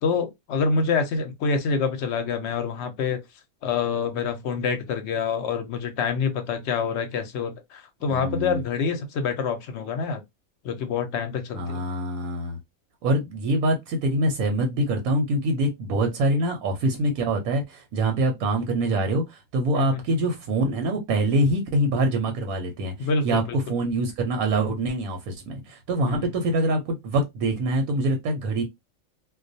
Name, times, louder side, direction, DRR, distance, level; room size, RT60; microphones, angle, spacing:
voice 1, 0.0-3.2 3.6-10.2 10.6-11.8 19.8-20.0 23.0-23.6 26.0-26.3, left 5 dB, 65° left, 0.7 m, -26 dB
voice 2, 8.1-8.6 11.5-12.6 13.0-28.6, right 1 dB, 85° right, 1.1 m, -25 dB
2.3 x 2.2 x 2.6 m
omnidirectional pair, 1.5 m